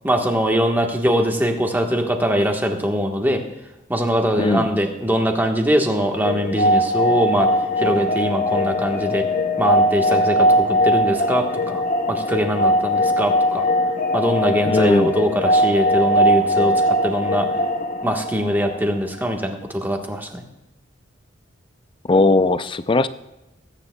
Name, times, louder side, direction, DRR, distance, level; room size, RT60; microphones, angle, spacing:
voice 1, 0.0-3.4 3.9-7.5 7.8-9.3 9.6-11.8 12.1-13.7 14.1-17.5 18.0-20.4, equal, 10° right, 3 dB, 1.3 m, -22 dB
voice 2, 4.4-4.7 14.7-15.1 22.1-23.1, left 2 dB, 25° left, 13 dB, 0.4 m, -18 dB
sound 1, 6.2-19.0, equal, 45° left, 0.9 m, -20 dB
20.5 x 9.7 x 2.3 m, 0.94 s
head